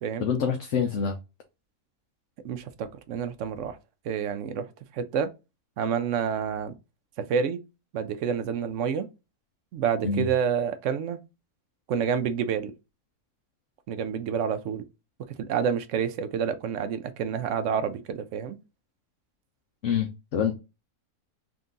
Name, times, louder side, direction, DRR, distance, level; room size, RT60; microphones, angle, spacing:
voice 1, 0.2-1.2 10.0-10.3 19.8-20.6, left 6 dB, 65° left, 0.9 m, -26 dB
voice 2, 2.4-3.8 4.0-4.6 4.9-5.3 5.8-6.7 7.3-7.6 7.9-9.1 9.7-11.2 11.9-12.7 13.9-14.8 15.3-18.6, right 7 dB, 70° right, 0.8 m, -28 dB
3.9 x 2.6 x 3.7 m
omnidirectional pair, 1.6 m